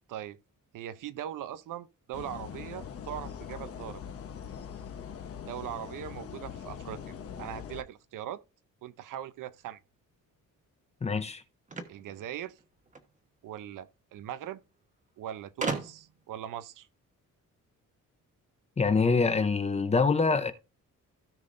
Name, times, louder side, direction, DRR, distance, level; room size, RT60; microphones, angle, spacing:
voice 1, 0.1-0.4 0.7-4.0 5.5-7.0 7.4-8.4 8.8-9.8 11.9-12.6 13.4-14.6 15.2-16.9, right 11 dB, 80° right, 0.8 m, -40 dB
sound 1, 2.1-7.8, left 7 dB, 45° left, 1.1 m, -42 dB
voice 2, 11.0-11.4 18.8-20.5, left 4 dB, 20° left, 0.7 m, -25 dB
sound 2, 11.7-13.1 14.2-14.3 14.5-14.6 15.6-16.2, right 3 dB, 25° right, 1.2 m, -36 dB
16.5 x 5.8 x 2.6 m
wide cardioid pair, 170°, 32 cm